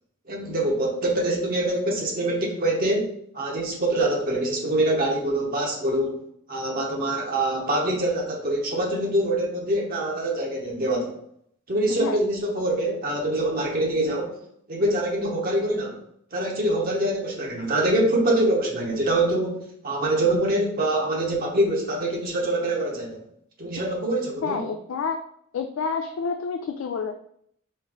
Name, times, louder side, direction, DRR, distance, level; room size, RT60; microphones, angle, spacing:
voice 1, 0.3-6.2 6.5-11.1 11.7-14.4 14.7-15.9 16.3-23.2 23.6-24.6, right 1 dB, 45° right, -1 dB, 1.0 m, -24 dB
voice 2, 24.4-25.2 25.5-27.2, left 5 dB, 70° left, 6 dB, 0.3 m, -28 dB
4.4 x 3.0 x 3.6 m, 0.68 s
head